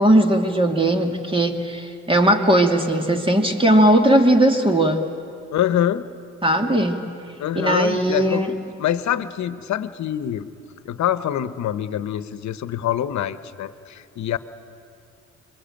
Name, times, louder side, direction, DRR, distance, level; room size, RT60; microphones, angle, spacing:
voice 1, 0.0-5.0 6.4-7.0 7.5-8.5, right 1 dB, 15° right, 4 dB, 2.7 m, -18 dB
voice 2, 5.5-6.1 7.4-8.4 8.8-10.5 10.8-14.4, left 11 dB, 70° left, 13 dB, 1.1 m, -25 dB
26.5 x 22.5 x 9.1 m, 2.5 s
cardioid pair, 90°, 30 cm